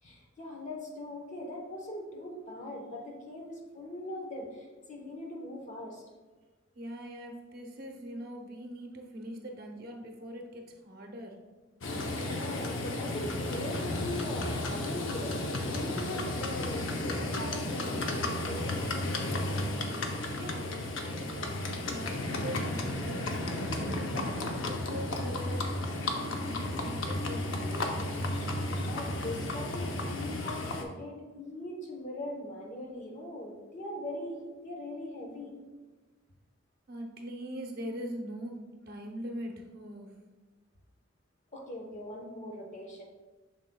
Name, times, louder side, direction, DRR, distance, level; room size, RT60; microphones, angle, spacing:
voice 1, 0.0-6.0 12.2-15.3 15.7-19.4 28.8-35.5 41.5-43.0, left 1 dB, 35° left, 0 dB, 1.1 m, -41 dB
voice 2, 6.7-11.4 20.4-21.6 21.8-28.0 36.9-40.1, equal, 45° right, 2 dB, 0.8 m, -42 dB
Livestock farm animals working animals, 11.8-30.8, left 2 dB, 70° left, 0.8 m, -33 dB
7.3 x 6.6 x 2.3 m, 1.3 s
head